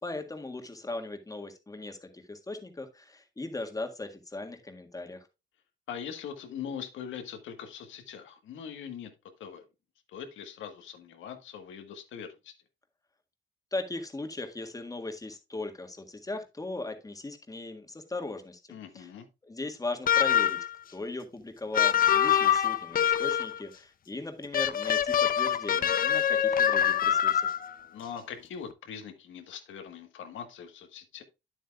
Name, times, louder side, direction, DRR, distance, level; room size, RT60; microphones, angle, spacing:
voice 1, 0.0-5.3 13.7-18.6 18.9-19.1 19.4-20.6 20.9-27.5, left 2 dB, 15° left, 6 dB, 1.7 m, -38 dB
voice 2, 5.9-9.1 9.4-9.6 10.1-12.5 18.7-19.2 27.9-31.2, left 8 dB, 80° left, 7 dB, 1.4 m, -42 dB
sound 1, 20.1-20.8 21.7-23.6 24.5-27.7, left 9 dB, 45° left, 0.5 m, -25 dB
9.2 x 7.9 x 2.3 m, 0.26 s
cardioid pair, 90°, 20 cm